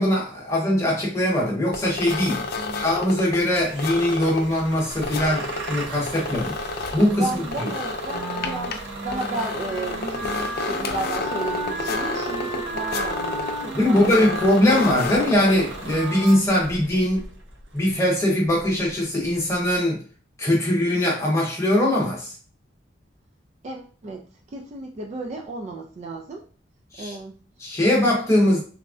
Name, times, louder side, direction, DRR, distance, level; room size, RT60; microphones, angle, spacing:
voice 1, 0.0-2.4 2.7-6.5 6.9-7.3 13.7-17.2 17.7-20.0 20.4-22.3 26.9-27.1 27.6-28.6, left 1 dB, 15° left, -3 dB, 1.0 m, -21 dB
sound 1, 1.7-16.1, left 3 dB, 55° left, 0.4 m, -31 dB
voice 2, 2.6-2.9 7.2-14.2 14.5-15.1 23.6-26.4 27.0-27.4, right 2 dB, 35° right, 2 dB, 0.3 m, -34 dB
Bus / Engine starting, 3.6-19.8, right 3 dB, 80° right, 0.6 m, -38 dB
Wind instrument woodwind instrument, 8.1-16.4, right 1 dB, 55° right, 1.2 m, -34 dB
3.5 x 2.1 x 2.4 m, 0.39 s
head